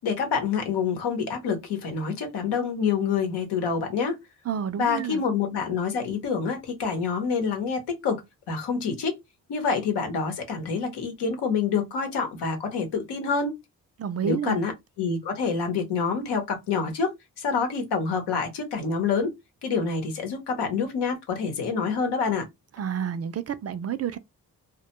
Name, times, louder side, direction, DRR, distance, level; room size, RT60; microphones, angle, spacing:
voice 1, 0.0-4.2 4.8-8.2 8.5-9.2 9.5-13.5 14.2-14.7 15.0-19.3 19.6-22.5, left 5 dB, 85° left, 0.9 m, -27 dB
voice 2, 4.5-5.2 14.0-14.6 22.8-24.2, right 8 dB, 40° right, 0.4 m, -29 dB
2.2 x 2.2 x 2.8 m
cardioid pair, 55°, 39 cm